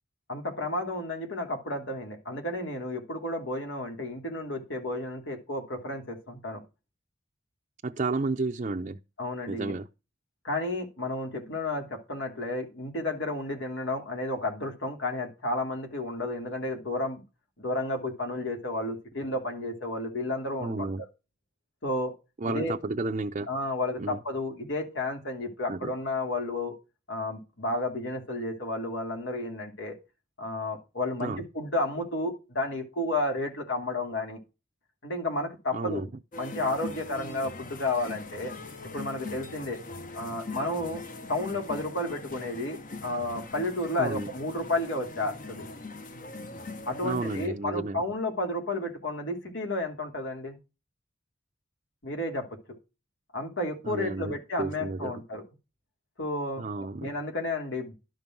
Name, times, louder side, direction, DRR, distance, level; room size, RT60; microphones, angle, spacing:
voice 1, 0.3-6.6 9.2-9.8 10.4-17.2 17.6-20.9 21.8-22.1 22.5-22.7 23.5-26.7 27.1-30.0 30.4-34.4 35.0-36.0 36.4-38.5 38.9-39.8 40.1-41.0 41.3-45.7 46.9-50.6 52.0-52.8 53.3-55.4 56.2-56.7 57.0-57.9, left 2 dB, 80° left, 3.0 m, -32 dB
voice 2, 7.8-9.0 9.5-9.9 20.6-21.0 22.4-23.5 24.0-24.2 25.7-25.9 31.2-31.4 35.7-36.1 44.0-44.3 47.0-48.0 53.8-55.1 56.6-57.1, right 3 dB, 40° right, 0.5 m, -32 dB
sound 1, 36.3-47.5, left 3 dB, 45° left, 0.9 m, -41 dB
12.0 x 5.3 x 5.9 m
head